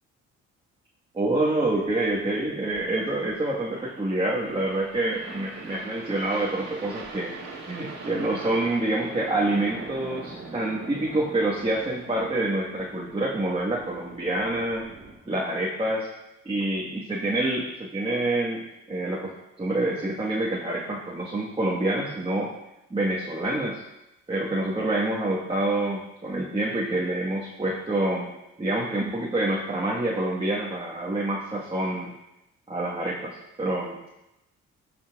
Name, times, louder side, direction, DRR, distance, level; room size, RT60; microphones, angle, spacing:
voice 1, 1.1-7.3 7.7-14.9 15.2-16.1 16.4-19.3 19.6-22.5 22.9-23.8 24.3-28.3 28.6-32.1 32.7-34.1, right 1 dB, 20° right, -5 dB, 1.3 m, -27 dB
sound 1, 1.8-15.1, right 3 dB, 55° right, 1.9 m, -42 dB
16.5 x 5.7 x 2.3 m, 0.92 s
cardioid pair, 90°, 30 cm